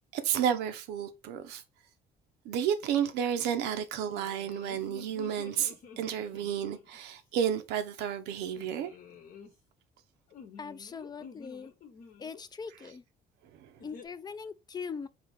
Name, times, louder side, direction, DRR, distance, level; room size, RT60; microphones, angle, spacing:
voice 1, 0.1-1.6 2.4-8.9 13.6-13.7, right 9 dB, 90° right, 0.7 m, -31 dB
sound 1, 3.9-7.0 8.4-9.5 10.3-12.4 13.8-14.1, left 6 dB, 55° left, 0.9 m, -50 dB
voice 2, 10.6-11.7 12.2-13.0 13.8-15.1, left 5 dB, 25° left, 0.3 m, -41 dB
4.2 x 2.7 x 3.5 m
cardioid pair, 110°, 17 cm